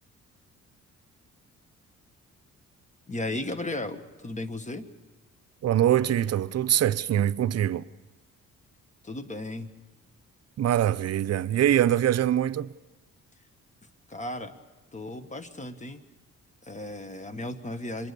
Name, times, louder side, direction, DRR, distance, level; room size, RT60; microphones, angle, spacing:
voice 1, 3.1-4.9 9.0-9.7 14.1-14.6 14.9-16.0 16.6-18.1, left 2 dB, 25° left, 1.5 m, -35 dB
voice 2, 5.6-7.8 10.6-12.7, right 11 dB, 55° right, 0.7 m, -23 dB
25.0 x 20.5 x 6.9 m
cardioid pair, 90°, 30 cm